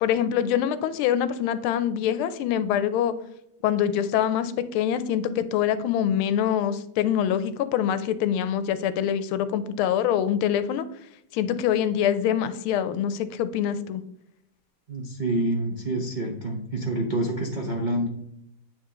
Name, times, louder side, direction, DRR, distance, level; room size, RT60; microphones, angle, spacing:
voice 1, 0.0-3.1 3.6-10.8 11.3-14.0, left 9 dB, 85° left, 13 dB, 1.5 m, -24 dB
voice 2, 14.9-18.1, right 1 dB, 90° right, 0 dB, 0.4 m, -27 dB
8.9 x 3.3 x 3.7 m, 0.78 s
omnidirectional pair, 2.3 m